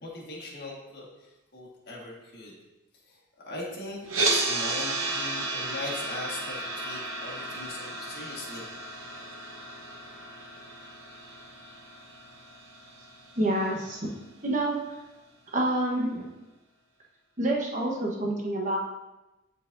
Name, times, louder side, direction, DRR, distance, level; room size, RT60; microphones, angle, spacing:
voice 1, 0.0-2.6 3.1-8.7, left 2 dB, 55° left, -4 dB, 1.7 m, -40 dB
sound 1, 4.1-14.2, right 2 dB, 80° right, 1.0 m, -33 dB
voice 2, 13.4-14.0 14.4-14.8 15.5-16.3 17.4-18.8, right 1 dB, 40° right, -2 dB, 1.1 m, -27 dB
10.5 x 4.1 x 2.6 m, 1.0 s
head